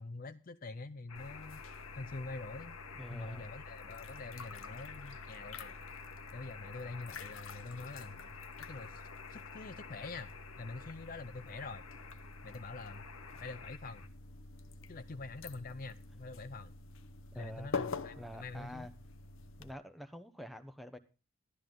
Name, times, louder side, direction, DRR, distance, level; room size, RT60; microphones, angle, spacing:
voice 1, 0.0-1.6 1.9-2.8 3.1-5.8 6.3-10.3 10.6-11.8 12.4-13.1 13.3-14.1 14.9-16.7 17.3-18.9, left 3 dB, 40° left, 11 dB, 0.5 m, -45 dB
sound 1, 1.1-14.1, left 6 dB, 80° left, 1.4 m, -51 dB
sound 2, 1.1-19.7, left 3 dB, 60° left, 0.8 m, -47 dB
voice 2, 2.9-3.5 17.3-17.7 18.2-18.9 19.6-21.0, equal, ahead, 8 dB, 0.9 m, -47 dB
12.5 x 12.5 x 3.8 m, 0.32 s
head